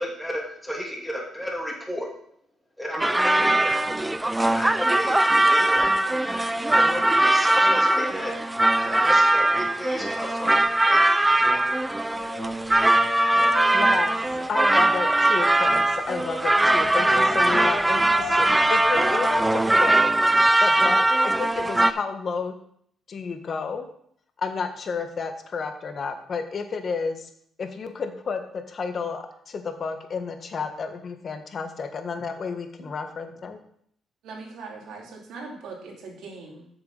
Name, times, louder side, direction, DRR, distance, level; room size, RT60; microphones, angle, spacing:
voice 1, 0.0-2.1 2.8-3.8 4.5-5.2 5.4-5.9 6.7-8.3 8.8-10.5 10.8-11.2, equal, 5° left, -2 dB, 2.9 m, -32 dB
sound 1, 3.0-21.9, right 1 dB, 10° right, 0.5 m, -21 dB
Wind, 11.4-20.6, left 5 dB, 80° left, 4.0 m, -39 dB
voice 2, 13.7-20.1 20.6-22.5 23.1-23.9 24.4-27.3 27.6-33.6, left 5 dB, 50° left, 7 dB, 1.4 m, -31 dB
voice 3, 34.2-36.7, right 4 dB, 80° right, -1 dB, 2.9 m, -40 dB
8.4 x 6.8 x 5.5 m, 0.66 s
cardioid pair, 90°, 0 cm